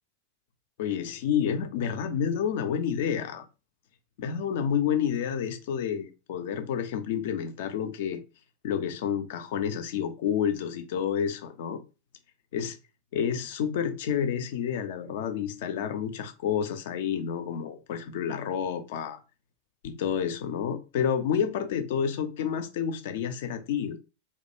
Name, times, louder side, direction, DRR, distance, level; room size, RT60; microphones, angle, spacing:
voice 1, 0.8-3.5 4.2-8.2 8.6-11.8 12.5-12.8 13.1-19.2 19.8-24.0, left 8 dB, 55° left, 0.4 m, -29 dB
2.2 x 2.1 x 2.9 m
figure-of-eight pair, 90°, 0 cm